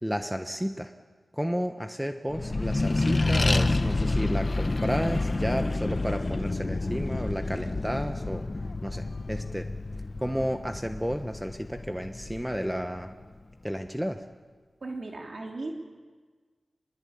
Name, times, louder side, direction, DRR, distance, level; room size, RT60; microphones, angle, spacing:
voice 1, 0.0-0.9 1.3-8.5 8.8-9.7 10.2-13.1 13.6-14.2, equal, 5° right, 6 dB, 1.2 m, -32 dB
Accelerating revving vroom, 2.3-13.2, left 2 dB, 40° left, 1.0 m, -29 dB
voice 2, 14.8-15.7, right 2 dB, 60° right, 1 dB, 2.8 m, -36 dB
25.0 x 21.0 x 8.7 m, 1.5 s
wide cardioid pair, 70°, 0 cm